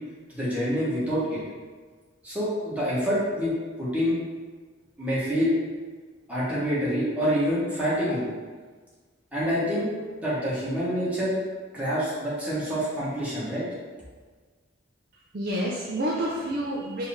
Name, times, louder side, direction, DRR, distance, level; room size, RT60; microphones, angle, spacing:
voice 1, 0.3-1.4 2.2-3.5 3.8-4.2 5.0-5.5 6.3-8.3 9.3-9.9 10.2-11.3 11.7-13.6, equal, 10° right, -9 dB, 1.3 m, -26 dB
voice 2, 15.1-17.1, right 1 dB, 50° right, -4 dB, 0.5 m, -29 dB
4.7 x 2.8 x 3.5 m, 1.4 s
head